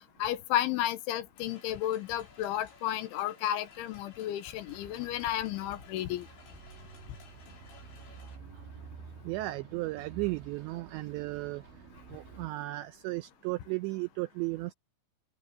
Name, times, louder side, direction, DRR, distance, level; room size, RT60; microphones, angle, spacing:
voice 1, 0.0-6.3, left 12 dB, 75° left, 3.3 m, -32 dB
sound 1, 1.4-8.4, left 5 dB, 60° left, 7.5 m, -57 dB
Bus, 4.7-12.5, right 5 dB, 65° right, 5.2 m, -50 dB
voice 2, 9.2-11.6 12.1-14.7, right 20 dB, 90° right, 2.5 m, -35 dB
omnidirectional pair, 5.8 m